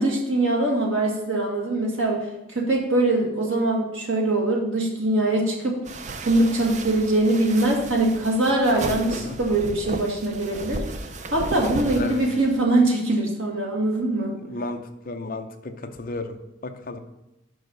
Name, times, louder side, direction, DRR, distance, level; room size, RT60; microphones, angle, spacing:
voice 1, 0.0-2.2 2.5-5.8 6.2-10.8 11.3-14.3, right 2 dB, 80° right, -1 dB, 1.8 m, -22 dB
sound 1, 5.9-12.6, right 2 dB, 35° right, 0.5 m, -34 dB
voice 2, 14.5-15.7 16.0-16.3 16.6-17.0, left 2 dB, 45° left, 6 dB, 0.6 m, -33 dB
6.3 x 5.5 x 5.2 m, 0.94 s
head